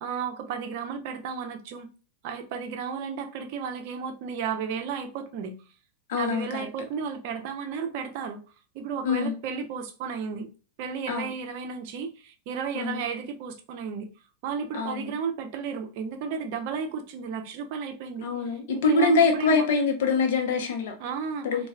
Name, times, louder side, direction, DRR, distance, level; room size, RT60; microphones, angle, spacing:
voice 1, 0.0-1.9 2.2-5.5 6.2-8.4 8.7-10.5 10.8-14.1 14.4-18.3 18.7-19.7 21.0-21.5, right 6 dB, 45° right, 0.6 m, -33 dB
voice 2, 6.1-6.5 9.0-9.3 11.1-11.3 12.7-13.0 14.7-15.1 18.2-20.9 21.4-21.7, left 4 dB, 55° left, 0.8 m, -24 dB
4.0 x 2.3 x 2.3 m
figure-of-eight pair, 90°, 0 cm